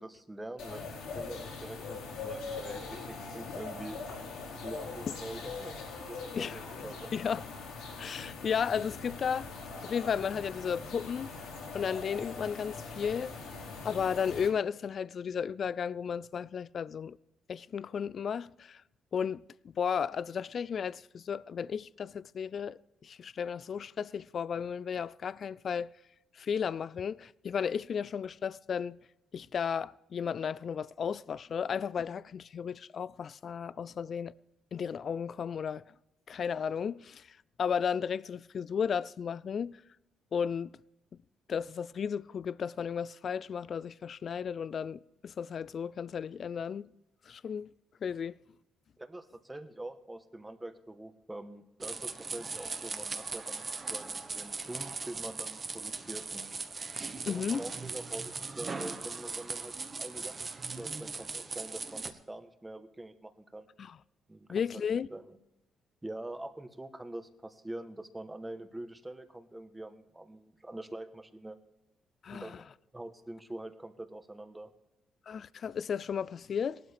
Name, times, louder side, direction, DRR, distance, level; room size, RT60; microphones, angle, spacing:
voice 1, 0.0-4.0 4.6-5.8 6.1-6.2 6.5-7.1 49.0-56.5 57.3-59.7 60.0-63.7 64.3-64.8 65.1-65.4 66.0-71.6 72.3-72.6 72.9-74.7, right 1 dB, 15° right, 1.2 m, -44 dB
sound 1, 0.6-14.5, left 4 dB, 85° left, 4.7 m, -42 dB
voice 2, 7.1-7.4 8.0-9.5 9.8-11.3 11.7-13.3 13.8-17.2 17.5-18.8 19.1-19.4 19.7-25.9 26.4-29.0 29.3-34.4 34.7-35.8 36.3-37.3 37.6-39.8 40.3-40.7 41.5-46.9 47.3-47.7 48.0-48.4 57.3-57.6 63.8-63.9 64.5-65.1 72.2-72.5 75.3-76.8, left 7 dB, 55° left, 0.3 m, -34 dB
sound 2, 51.8-62.1, right 4 dB, 35° right, 1.2 m, -39 dB
18.0 x 12.5 x 3.5 m
cardioid pair, 90°, 0 cm